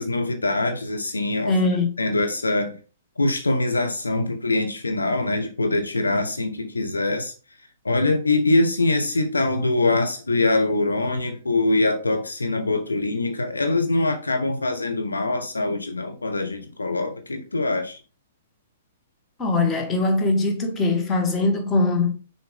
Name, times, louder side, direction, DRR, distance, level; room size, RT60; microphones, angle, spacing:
voice 1, 0.0-1.6 2.0-2.8 3.2-7.3 7.8-18.0, left 2 dB, 80° left, 1.2 m, -23 dB
voice 2, 1.4-1.9 19.4-22.1, left 2 dB, 20° left, 1.4 m, -21 dB
6.6 x 4.4 x 3.6 m
figure-of-eight pair, 115°, 0 cm